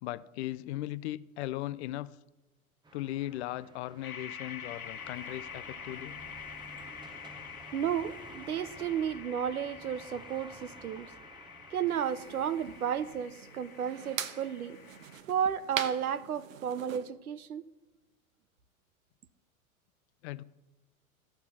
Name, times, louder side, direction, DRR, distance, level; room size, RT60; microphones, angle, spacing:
voice 1, 0.0-2.1 2.9-6.2 20.2-20.4, left 15 dB, 50° left, 0.5 m, -38 dB
sound 1, 2.8-13.1, right 2 dB, 10° right, 0.8 m, -53 dB
sound 2, 4.0-15.2, left 7 dB, 85° left, 1.0 m, -47 dB
voice 2, 7.7-11.1 11.7-14.8 15.3-17.6, right 8 dB, 90° right, 0.7 m, -33 dB
sound 3, 11.9-17.0, right 9 dB, 65° right, 1.0 m, -42 dB
13.5 x 5.8 x 6.0 m
hypercardioid pair, 95°, 42 cm